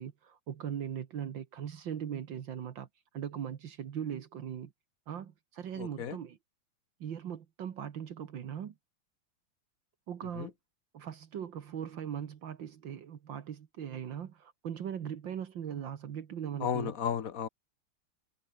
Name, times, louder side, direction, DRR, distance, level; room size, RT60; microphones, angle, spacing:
voice 1, 0.0-2.9 3.1-4.7 5.1-6.4 7.0-8.7 10.1-10.5 10.9-16.9, right 9 dB, 70° right, 2.0 m, -39 dB
voice 2, 5.8-6.2 10.3-10.5 16.6-17.5, left 8 dB, 50° left, 1.4 m, -33 dB
omnidirectional pair, 2.2 m